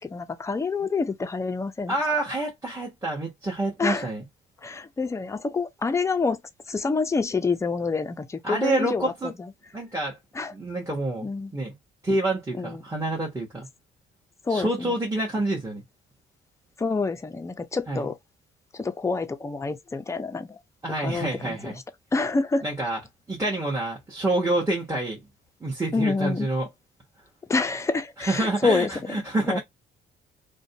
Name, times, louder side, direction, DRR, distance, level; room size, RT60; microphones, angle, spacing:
voice 1, 0.0-2.0 3.8-4.1 4.6-6.4 6.7-9.5 10.3-10.5 11.2-11.5 12.5-12.8 14.4-14.9 16.8-18.2 18.7-20.6 21.0-21.7 22.1-22.6 25.9-26.5 27.5-28.9 29.2-29.6, left 4 dB, 15° left, 0.4 m, -27 dB
voice 2, 1.9-4.2 8.4-9.3 9.7-10.2 10.5-11.7 12.0-13.7 14.5-15.8 17.9-18.1 20.8-21.8 22.6-23.0 23.3-25.2 25.6-26.7 28.3-29.6, right 2 dB, 15° right, 1.0 m, -27 dB
2.5 x 2.2 x 2.7 m
cardioid pair, 90°, 20 cm